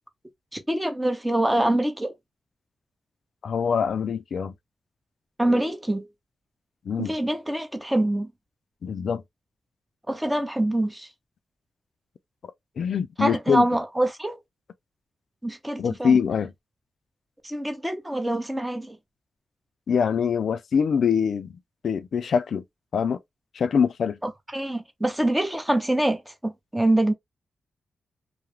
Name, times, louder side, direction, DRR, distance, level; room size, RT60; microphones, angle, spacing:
voice 1, 0.5-2.1 5.4-6.1 7.0-8.3 10.1-11.1 13.2-14.4 15.4-16.2 17.4-19.0 24.2-27.1, right 1 dB, 10° right, 0.7 m, -25 dB
voice 2, 3.4-4.5 6.9-7.1 8.8-9.2 12.8-13.7 15.8-16.5 19.9-21.6 21.8-22.6 22.9-23.2 23.5-24.2, left 6 dB, 75° left, 0.3 m, -24 dB
2.4 x 2.0 x 2.9 m
cardioid pair, 70°, 0 cm